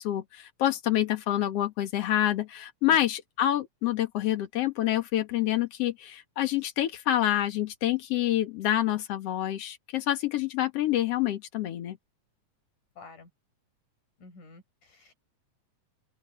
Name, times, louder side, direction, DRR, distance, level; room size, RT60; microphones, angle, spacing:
voice 1, 0.0-12.0, left 12 dB, 55° left, 2.3 m, -27 dB
voice 2, 13.0-13.3 14.2-15.1, left 3 dB, 80° left, 7.1 m, -50 dB
open air
omnidirectional pair, 3.5 m